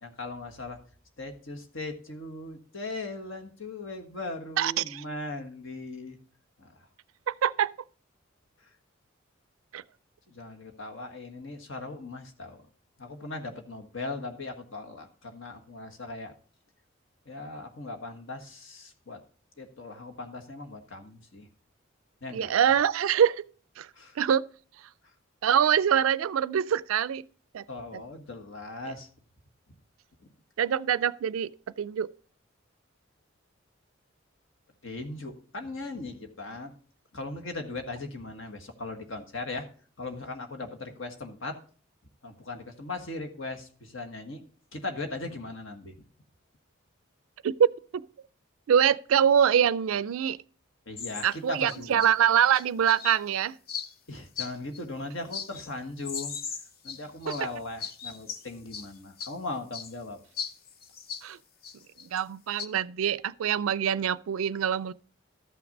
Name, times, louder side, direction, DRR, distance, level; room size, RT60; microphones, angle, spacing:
voice 1, 0.0-0.8 1.2-6.2 6.6-6.9 8.6-8.7 10.3-12.6 13.0-16.3 17.2-19.2 19.6-21.5 22.2-22.5 23.9-24.2 27.7-29.1 34.8-36.7 37.1-39.7 40.0-41.6 42.2-44.4 44.7-46.0 50.8-52.1 54.1-56.4 56.8-60.2, left 2 dB, 75° left, 1.6 m, -38 dB
voice 2, 4.6-5.0 7.3-7.7 9.7-9.8 22.3-23.4 23.8-23.9 24.2-24.4 25.4-27.2 27.5-27.6 30.6-31.5 31.8-32.1 47.4-48.0 48.7-50.4 51.2-53.6 61.2-61.4 62.1-64.9, right 8 dB, 85° right, 0.4 m, -24 dB
sound 1, 51.0-51.3 51.7-52.1 52.5-53.2 53.7-53.9 54.4-54.8 55.3-55.7 56.0-57.5 57.8-58.9 59.2-59.3 59.7-59.9 60.4-61.2 61.6-62.2 62.6-62.7, left 6 dB, 45° left, 0.7 m, -37 dB
13.0 x 5.9 x 5.2 m
head